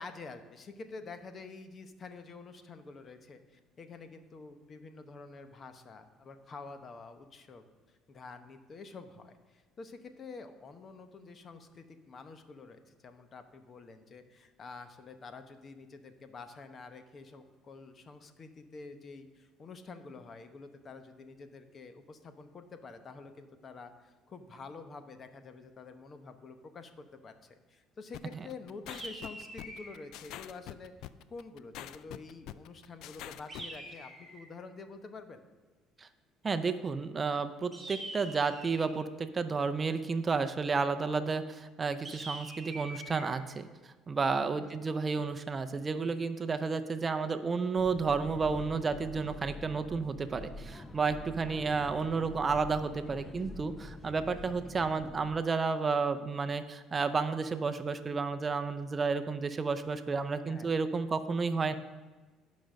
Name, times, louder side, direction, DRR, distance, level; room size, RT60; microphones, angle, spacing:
voice 1, 0.0-26.9 27.2-35.4 44.6-44.8 60.5-60.7, left 4 dB, 40° left, 9 dB, 0.9 m, -48 dB
sound 1, 28.1-33.8, left 12 dB, 75° left, 0.4 m, -45 dB
sound 2, 28.9-30.0 33.5-34.5 37.7-39.0 42.0-43.3, right 1 dB, 5° right, 2.4 m, -44 dB
voice 2, 36.4-61.7, right 4 dB, 30° right, 9 dB, 0.5 m, -31 dB
sound 3, 47.8-55.4, left 1 dB, 15° left, 0.5 m, -46 dB
11.5 x 5.3 x 6.4 m, 1.3 s
cardioid pair, 100°, 0 cm